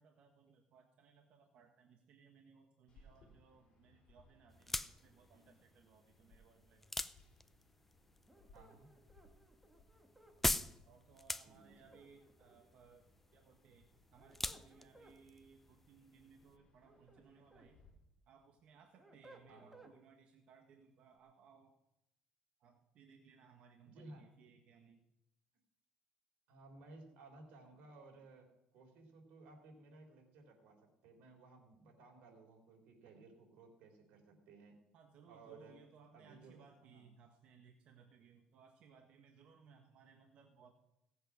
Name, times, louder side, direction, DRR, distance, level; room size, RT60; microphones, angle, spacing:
voice 1, 0.0-6.8 10.8-17.8 18.3-21.7 22.6-25.0 34.9-40.7, right 6 dB, 60° right, 3 dB, 1.4 m, -64 dB
sound 1, 2.9-17.9, left 2 dB, 40° left, 4.7 m, -69 dB
sound 2, 4.5-16.6, left 2 dB, 10° left, 0.5 m, -44 dB
sound 3, 8.3-10.4 11.7-12.8 13.9-15.2 16.6-17.7 18.2-20.0, right 2 dB, 10° right, 1.6 m, -63 dB
voice 2, 8.5-8.9 11.4-11.9 19.5-19.9 23.8-24.3 26.5-34.8 35.3-35.8 36.1-37.1, right 2 dB, 80° right, 1 dB, 3.9 m, -58 dB
17.0 x 8.0 x 6.3 m, 0.83 s
cardioid pair, 135°, 2 cm